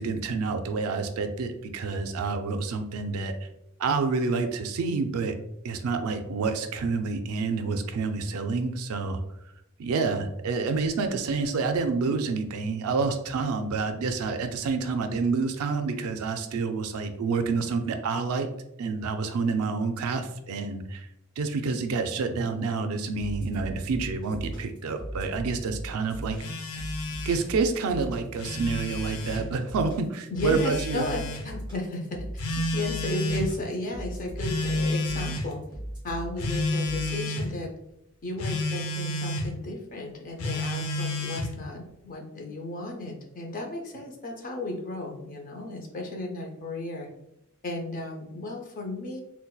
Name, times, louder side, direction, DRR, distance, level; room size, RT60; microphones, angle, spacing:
voice 1, 0.0-3.3 3.8-5.3 5.6-9.2 9.8-18.5 18.8-21.1 21.4-26.4 27.2-31.0, right 4 dB, 75° right, 7 dB, 0.4 m, -28 dB
sound 1, 23.2-37.4, right 1 dB, 20° left, 1.3 m, -38 dB
Telephone, 26.4-27.5 28.2-29.4 30.4-31.4 32.4-33.5 34.4-35.5 36.4-37.5 38.4-39.5 40.4-41.5, left 2 dB, 85° left, 0.5 m, -30 dB
voice 2, 30.3-32.2 32.5-35.6 36.0-37.7 38.2-47.1 47.6-49.2, left 2 dB, 40° left, 1 dB, 0.5 m, -34 dB
3.9 x 2.2 x 2.3 m, 0.82 s
head